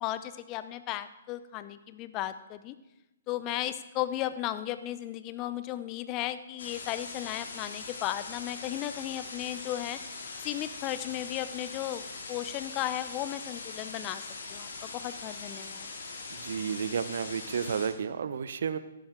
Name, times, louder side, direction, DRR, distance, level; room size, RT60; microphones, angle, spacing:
voice 1, 0.0-2.7 3.3-10.0 10.4-14.2 14.5-15.9, left 13 dB, 30° left, 13 dB, 0.6 m, -35 dB
sound 1, 6.6-17.9, left 4 dB, 65° left, 2.3 m, -42 dB
voice 2, 16.3-18.8, right 7 dB, 60° right, 13 dB, 0.7 m, -32 dB
13.0 x 11.0 x 3.7 m, 0.99 s
figure-of-eight pair, 130°, 0 cm